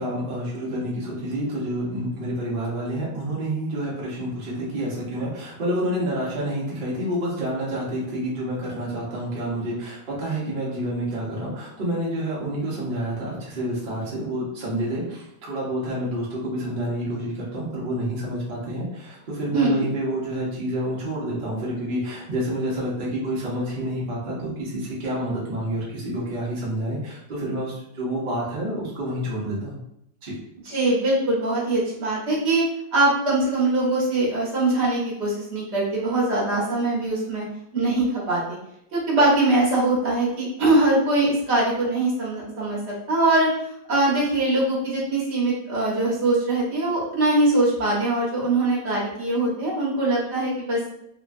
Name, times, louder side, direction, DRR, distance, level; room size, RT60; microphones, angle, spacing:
voice 1, 0.0-29.8 30.2-30.3, right 1 dB, 70° right, -5 dB, 0.4 m, -28 dB
voice 2, 19.5-19.8 30.7-32.6 32.9-37.4 37.7-38.4 38.9-43.5 43.9-50.8, right 2 dB, 50° right, -5 dB, 0.9 m, -22 dB
3.0 x 2.1 x 2.5 m, 0.78 s
omnidirectional pair, 1.9 m